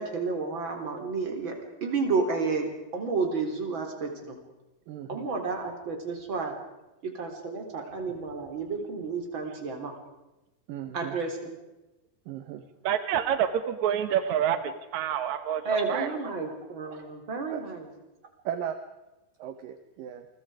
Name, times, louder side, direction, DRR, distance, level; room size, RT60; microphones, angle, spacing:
voice 1, 0.0-1.6 1.8-2.7 2.9-4.4 5.1-6.5 7.1-9.9 10.9-11.4 15.6-17.9, right 4 dB, 30° right, 3 dB, 3.9 m, -31 dB
voice 2, 4.9-5.3 10.7-11.2 12.3-12.7 17.5-17.6 18.4-18.8 19.4-20.3, right 10 dB, 70° right, 9 dB, 2.3 m, -36 dB
voice 3, 12.8-15.6 15.9-16.1, right 9 dB, 85° right, 10 dB, 1.6 m, -27 dB
28.5 x 22.5 x 5.0 m, 1.0 s
omnidirectional pair, 5.1 m